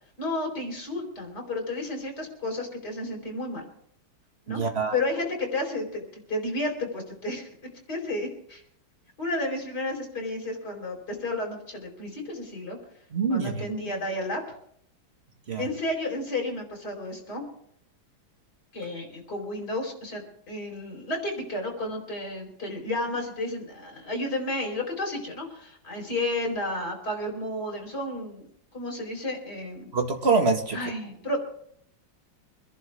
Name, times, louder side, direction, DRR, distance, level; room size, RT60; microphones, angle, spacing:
voice 1, 0.2-3.6 4.5-4.6 4.9-8.6 9.2-12.8 13.3-14.4 15.6-17.4 18.7-28.5 28.7-29.9 30.7-31.4, left 2 dB, 50° left, 1 dB, 5.0 m, -32 dB
voice 2, 4.5-4.9 13.1-13.7 15.5-15.6 29.9-30.8, right 4 dB, 35° right, 3 dB, 1.9 m, -25 dB
25.5 x 11.0 x 3.5 m, 0.68 s
omnidirectional pair, 2.2 m